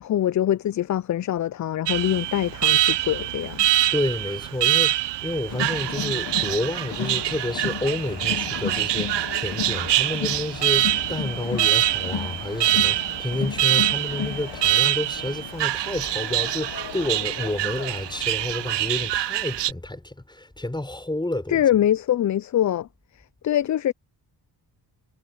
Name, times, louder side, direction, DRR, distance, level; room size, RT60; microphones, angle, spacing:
voice 1, 0.0-3.7 21.5-22.9 23.4-23.9, left 11 dB, 45° left, 0.5 m, -23 dB
Alarm, 1.9-19.7, right 15 dB, 80° right, 0.7 m, -25 dB
Speech, 2.4-7.7, right 5 dB, 45° right, 7.7 m, -51 dB
voice 2, 3.9-21.7, left 1 dB, 10° left, 6.9 m, -30 dB
Crowd, 5.5-19.1, left 8 dB, 65° left, 1.8 m, -34 dB
cardioid pair, 110°, 42 cm